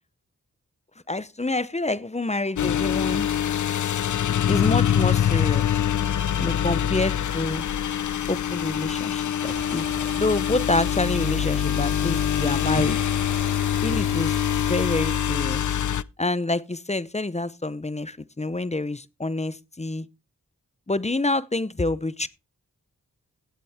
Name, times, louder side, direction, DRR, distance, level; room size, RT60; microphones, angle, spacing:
voice 1, 1.1-3.3 4.5-5.7 6.4-7.6 8.3-9.8 10.1-13.0 13.8-15.6 16.2-20.1 20.9-22.3, left 2 dB, 20° left, 0.7 m, -27 dB
sound 1, 2.6-16.0, left 10 dB, 60° left, 0.5 m, -24 dB
sound 2, 7.8-15.9, left 3 dB, 45° left, 4.2 m, -53 dB
sound 3, 9.4-15.7, right 2 dB, 35° right, 3.6 m, -39 dB
16.5 x 7.6 x 3.5 m
cardioid pair, 45°, 34 cm